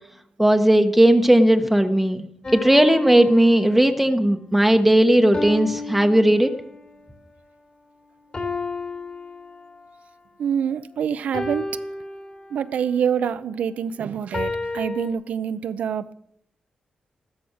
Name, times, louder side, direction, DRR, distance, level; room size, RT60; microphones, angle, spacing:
voice 1, 0.4-2.2 2.5-6.5, right 1 dB, 5° right, 1.2 m, -16 dB
sound 1, 2.4-4.2 5.3-7.0 8.3-10.0 11.3-12.8 14.3-15.1, left 3 dB, 35° left, 3.4 m, -32 dB
voice 2, 10.4-11.7 12.5-16.1, right 8 dB, 80° right, 0.7 m, -26 dB
14.0 x 13.0 x 6.5 m
cardioid pair, 85°, 2 cm